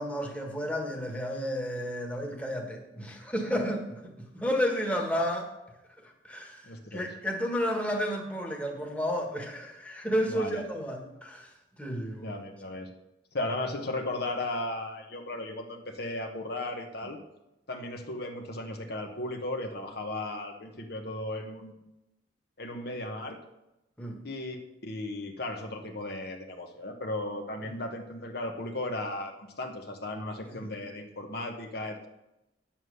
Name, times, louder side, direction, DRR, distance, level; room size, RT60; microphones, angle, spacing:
voice 1, 0.0-5.5 6.0-12.4 24.0-24.2 27.6-27.8 30.5-30.7, equal, 10° left, 1 dB, 1.4 m, -32 dB
voice 2, 6.6-7.1 10.3-10.6 12.2-12.9 13.3-17.2 17.7-21.8 22.6-23.4 24.2-32.1, left 1 dB, 60° left, 4 dB, 1.1 m, -36 dB
9.5 x 7.3 x 6.4 m, 0.93 s
head